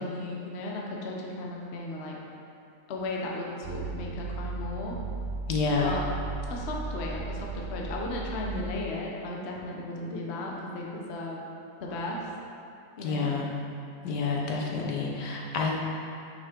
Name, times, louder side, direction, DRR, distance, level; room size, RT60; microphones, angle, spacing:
voice 1, 0.0-2.1 2.9-5.0 5.8-6.0 6.5-11.4 11.8-12.3 13.0-13.3, left 2 dB, 50° left, -2 dB, 0.8 m, -35 dB
sound 1, 3.6-8.7, right 3 dB, 90° right, 0.6 m, -36 dB
voice 2, 5.5-5.9 13.0-13.5 14.0-15.8, left 4 dB, 75° left, -1 dB, 1.3 m, -28 dB
5.8 x 5.3 x 3.6 m, 2.5 s
omnidirectional pair, 1.9 m